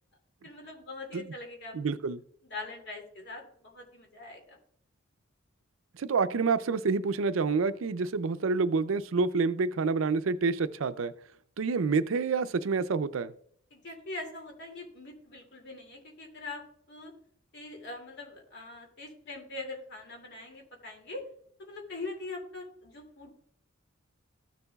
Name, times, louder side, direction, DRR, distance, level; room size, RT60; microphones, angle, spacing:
voice 1, 0.4-2.0 2.5-4.6 13.7-17.1 17.5-21.2 21.6-23.3, left 2 dB, 55° left, 1 dB, 2.5 m, -42 dB
voice 2, 1.7-2.2 6.0-11.1 11.6-13.3, right 4 dB, 70° right, 13 dB, 0.5 m, -28 dB
15.0 x 6.8 x 2.3 m, 0.64 s
head